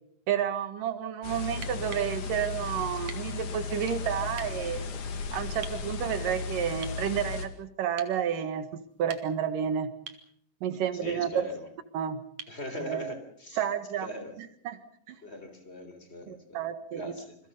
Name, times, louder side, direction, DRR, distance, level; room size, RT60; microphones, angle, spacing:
voice 1, 0.3-5.0 5.3-8.7 9.0-9.9 10.6-11.4 11.9-12.2 12.7-13.0 13.6-14.1 14.4-14.8 15.1-15.2 16.3-17.1, right 9 dB, 75° right, 10 dB, 3.2 m, -30 dB
sound 1, 1.2-7.5, left 5 dB, 65° left, 3.5 m, -35 dB
sound 2, 1.5-2.1 3.1-3.3 4.3-4.5 5.6-5.8 6.8-7.0 8.0-8.2 8.9-9.5 10.1-10.3 12.4-12.6 14.5-14.6, right 7 dB, 60° right, 2.8 m, -44 dB
voice 2, 10.9-11.7 12.5-13.6 14.0-14.4 15.2-16.7 16.9-17.4, left 1 dB, 20° left, 8 dB, 3.5 m, -40 dB
28.0 x 22.5 x 5.5 m, 0.68 s
omnidirectional pair, 3.9 m